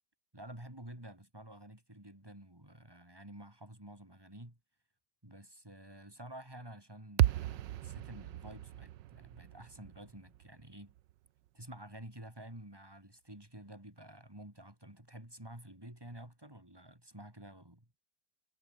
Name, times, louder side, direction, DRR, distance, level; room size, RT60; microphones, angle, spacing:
voice 1, 0.3-4.6 5.2-10.9 11.5-18.0, right 1 dB, 10° right, 4.9 m, -51 dB
sound 1, 7.2-11.5, right 14 dB, 85° right, 1.4 m, -35 dB
omnidirectional pair, 1.9 m